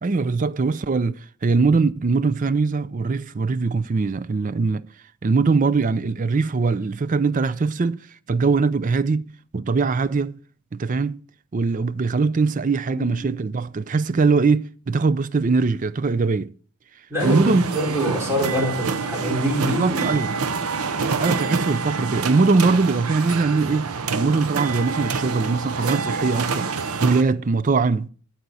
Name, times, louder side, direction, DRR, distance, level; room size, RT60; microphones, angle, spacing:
voice 1, 0.0-4.9 5.2-9.2 9.5-10.4 10.7-11.2 11.5-16.5 17.2-17.7 19.6-20.4 21.2-26.7 27.0-28.1, right 4 dB, 35° right, 0.4 m, -21 dB
voice 2, 12.9-13.3 17.1-20.2, equal, 10° right, 4.6 m, -25 dB
sound 1, 17.2-27.2, right 5 dB, 85° right, 0.8 m, -27 dB
12.5 x 8.0 x 4.1 m
head